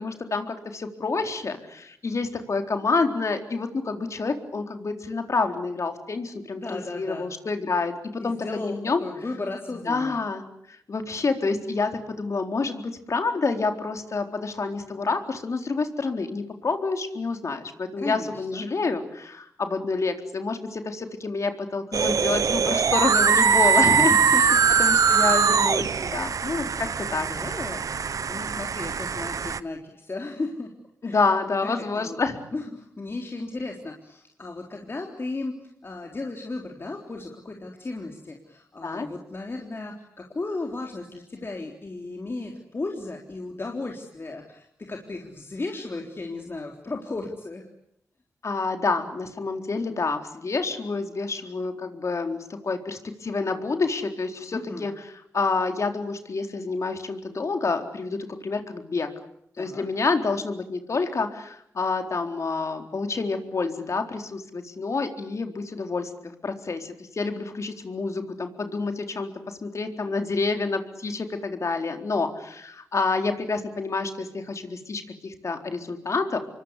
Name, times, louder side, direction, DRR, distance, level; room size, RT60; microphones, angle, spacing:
voice 1, 0.0-7.9 8.2-8.4 8.6-9.0 9.9-10.5 10.9-24.5 24.8-27.3 31.0-32.4 38.8-39.1 48.4-54.9 55.3-59.1 59.6-76.4, left 4 dB, 55° left, 6 dB, 4.0 m, -28 dB
voice 2, 6.6-7.3 8.2-10.2 18.0-18.7 24.0-25.7 27.1-30.7 31.0-31.3 31.6-32.2 32.5-47.7 54.5-54.9 59.6-59.8, left 2 dB, 40° left, 2 dB, 3.7 m, -35 dB
sound 1, 21.9-29.6, right 6 dB, 70° right, 1.0 m, -22 dB
27.0 x 23.5 x 8.3 m, 0.74 s
cardioid pair, 60°, 6 cm